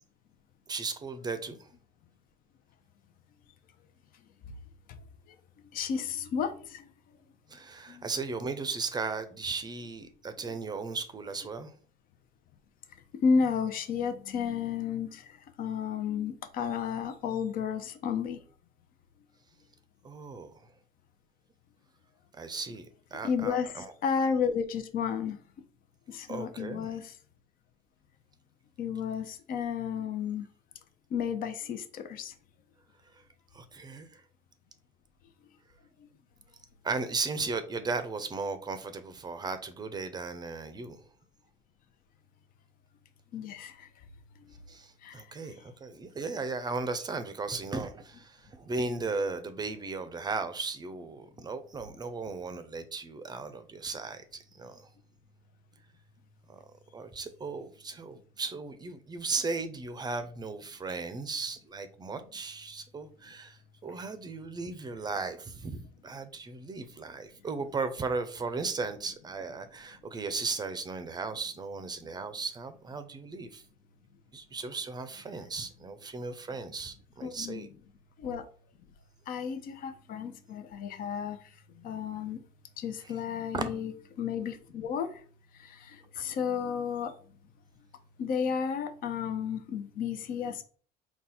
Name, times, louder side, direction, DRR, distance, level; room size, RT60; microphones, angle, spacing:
voice 1, 0.7-1.7 7.5-11.7 20.0-20.5 22.3-23.9 26.3-26.9 33.1-33.2 33.5-34.2 36.8-41.0 44.7-54.2 54.5-54.9 56.5-56.6 56.9-73.6 74.3-77.7 83.0-83.1 83.5-83.7 86.2-86.3, right 4 dB, 25° right, 0.5 m, -36 dB
voice 2, 5.7-6.9 7.9-8.1 13.2-15.2 15.6-18.4 23.2-25.4 26.1-27.1 28.8-30.5 31.1-32.3 43.3-43.9 45.0-45.2 77.2-77.7 78.2-78.4 79.3-81.4 81.8-82.4 82.8-83.9 84.2-85.1 85.6-87.1 88.2-90.6, left 6 dB, 60° left, 0.7 m, -32 dB
3.9 x 2.3 x 4.1 m
cardioid pair, 115°, 17 cm